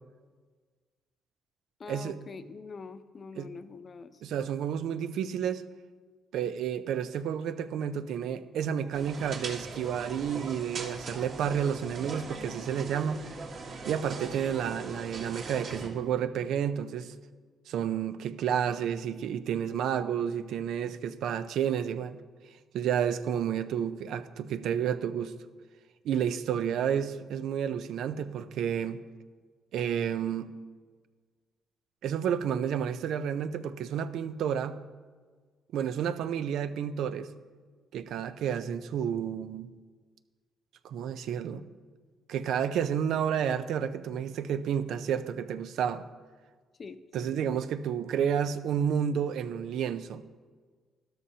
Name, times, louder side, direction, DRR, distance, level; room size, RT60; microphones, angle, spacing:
voice 1, 1.8-4.2 46.8-47.6, left 4 dB, 45° left, 11 dB, 0.7 m, -45 dB
voice 2, 4.2-5.6 6.3-13.2 13.8-17.1 17.7-22.2 22.7-25.4 26.0-29.0 29.7-30.5 32.0-34.8 35.7-37.3 37.9-39.7 40.8-41.6 42.3-46.0 47.1-50.2, right 8 dB, 80° right, 11 dB, 0.6 m, -30 dB
sound 1, 8.9-15.9, right 3 dB, 60° right, 2.0 m, -40 dB
13.0 x 12.5 x 2.8 m, 1.5 s
cardioid pair, 90°, 0 cm